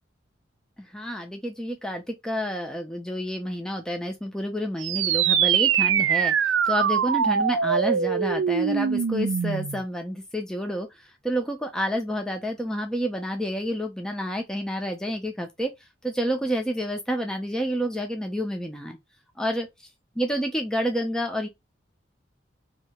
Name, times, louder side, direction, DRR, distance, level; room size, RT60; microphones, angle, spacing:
voice 1, 0.9-15.7 16.0-19.0 19.4-19.7 20.2-21.5, equal, 5° left, 0.5 m, -29 dB
sound 1, 4.8-9.8, right 8 dB, 75° right, 0.4 m, -23 dB
2.8 x 2.7 x 4.2 m
head